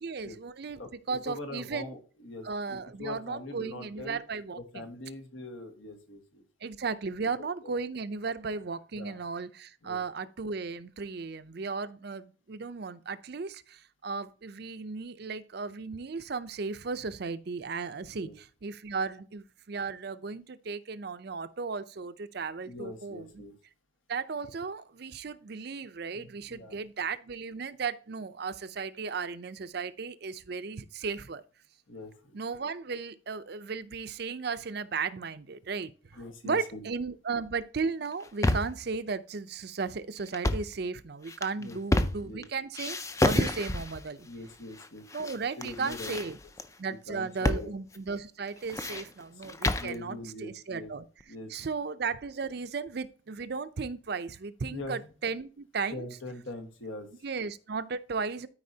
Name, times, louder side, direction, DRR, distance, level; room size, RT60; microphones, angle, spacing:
voice 1, 0.0-1.9 2.4-4.8 6.6-23.4 24.1-31.4 32.3-35.9 36.4-44.3 45.1-46.4 46.8-51.0 51.5-56.1 57.2-58.5, right 4 dB, 50° right, 0.5 m, -35 dB
voice 2, 1.2-4.2 4.6-6.4 7.4-7.7 8.9-9.2 9.8-10.0 18.1-18.4 22.6-23.6 26.1-26.8 31.9-32.4 36.1-36.8 41.6-42.4 44.2-46.2 46.9-47.7 49.4-50.9 51.3-51.6 54.6-55.1 55.9-57.1, left 2 dB, 80° left, 1.5 m, -43 dB
sound 1, 38.1-38.8 40.3-40.8 41.3-42.4 42.7-44.0 44.8-45.4 45.6-46.7 47.4-47.7 47.9-48.0 48.5-50.0, left 2 dB, 15° left, 0.4 m, -29 dB
13.0 x 4.8 x 2.8 m
head